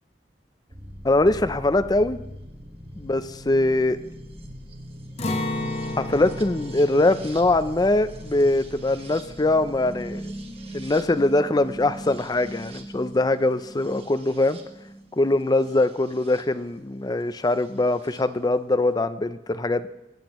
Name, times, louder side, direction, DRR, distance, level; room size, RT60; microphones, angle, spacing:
sound 1, 0.7-16.4 17.6-18.2, right 1 dB, 35° right, 1.3 m, -41 dB
voice 1, 1.0-2.2 3.0-4.0 6.0-10.3 10.7-14.6 15.1-19.9, left 2 dB, 20° left, 12 dB, 0.5 m, -22 dB
Acoustic guitar, 5.2-11.1 11.4-11.6 12.0-12.5, left 1 dB, 35° left, 1.1 m, -34 dB
22.5 x 8.8 x 3.1 m, 0.92 s
head